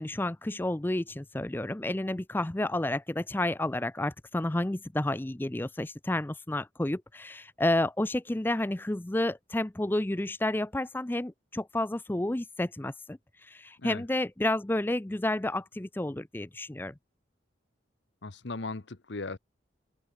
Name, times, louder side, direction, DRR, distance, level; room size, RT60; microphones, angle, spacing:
voice 1, 0.0-16.9, left 1 dB, 10° left, 0.4 m, -30 dB
voice 2, 18.2-19.4, left 3 dB, 70° left, 1.0 m, -37 dB
open air
head